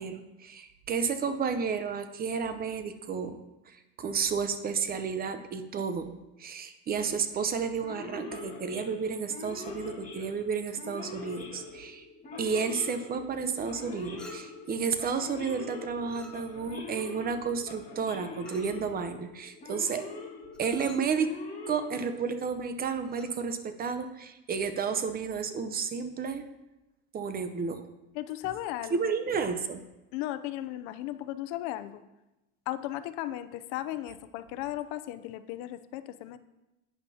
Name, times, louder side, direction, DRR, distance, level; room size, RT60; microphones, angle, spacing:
voice 1, 0.0-3.4 4.0-6.1 6.4-12.0 12.4-20.1 20.6-21.3 21.7-26.4 27.1-27.8 28.9-29.8, right 5 dB, 30° right, 9 dB, 0.7 m, -31 dB
Male speech man speaking / Siren, 7.8-22.5, left 3 dB, 25° left, 1.9 m, -43 dB
Chink clink, 14.2-14.7 16.1-16.8 18.5-18.8 20.5-21.1 23.0-23.4, equal, 5° left, 1.2 m, -51 dB
voice 2, 28.1-29.1 30.1-32.0 32.7-36.4, left 14 dB, 70° left, 12 dB, 0.6 m, -36 dB
11.0 x 9.4 x 2.8 m, 0.99 s
supercardioid pair, 125°, 31 cm